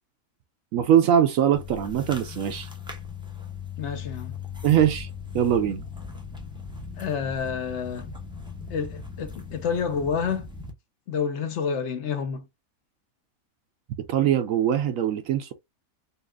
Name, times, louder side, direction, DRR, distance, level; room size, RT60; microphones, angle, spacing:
voice 1, 0.7-2.7 4.6-5.1 5.3-5.8 14.1-15.5, right 10 dB, 75° right, 1.0 m, -22 dB
sound 1, 1.5-10.7, left 6 dB, 5° right, 0.6 m, -38 dB
voice 2, 3.8-4.3 7.0-8.1 8.7-10.5 11.1-12.4, left 6 dB, 60° left, 0.9 m, -29 dB
4.2 x 2.3 x 2.4 m
omnidirectional pair, 1.5 m